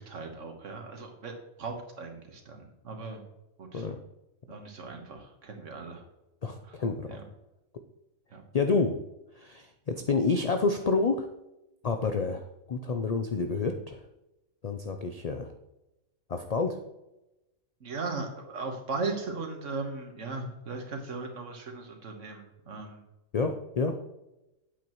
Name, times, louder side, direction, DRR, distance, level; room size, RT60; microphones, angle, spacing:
voice 1, 0.0-3.2 3.6-3.9 4.5-6.0 6.6-6.8 7.1-7.2 8.3-8.4 17.8-23.0, right 3 dB, 65° right, 4 dB, 1.6 m, -38 dB
voice 2, 6.4-7.1 8.5-9.0 9.4-11.3 11.8-14.0 14.6-15.5 16.3-16.8 23.3-24.0, left 4 dB, 65° left, 6 dB, 0.3 m, -29 dB
8.8 x 8.0 x 3.0 m, 0.94 s
omnidirectional pair, 1.4 m